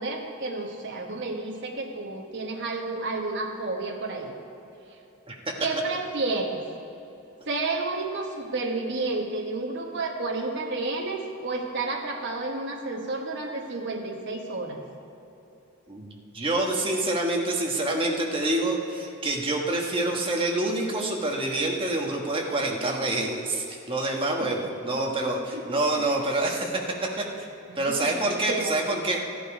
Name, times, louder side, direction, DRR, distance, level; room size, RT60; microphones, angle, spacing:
voice 1, 0.0-4.4 5.6-6.6 7.5-14.8 22.8-23.1 24.4-24.5 25.5-26.0 27.7-29.0, right 3 dB, 55° right, 1 dB, 1.1 m, -31 dB
voice 2, 15.9-27.4 27.8-29.2, right 2 dB, 25° right, 0 dB, 1.4 m, -27 dB
14.5 x 11.0 x 4.9 m, 2.9 s
head